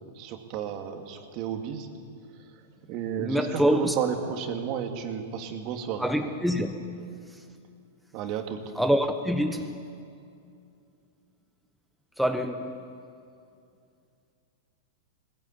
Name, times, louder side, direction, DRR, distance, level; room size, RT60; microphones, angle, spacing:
voice 1, 0.2-1.9 2.9-6.1 8.1-8.6, right 8 dB, 45° right, 5 dB, 2.3 m, -32 dB
voice 2, 3.2-3.9 6.0-7.1 8.8-9.9 12.2-12.8, equal, ahead, 5 dB, 1.1 m, -26 dB
20.0 x 15.5 x 8.5 m, 2.5 s
hypercardioid pair, 110°, 0 cm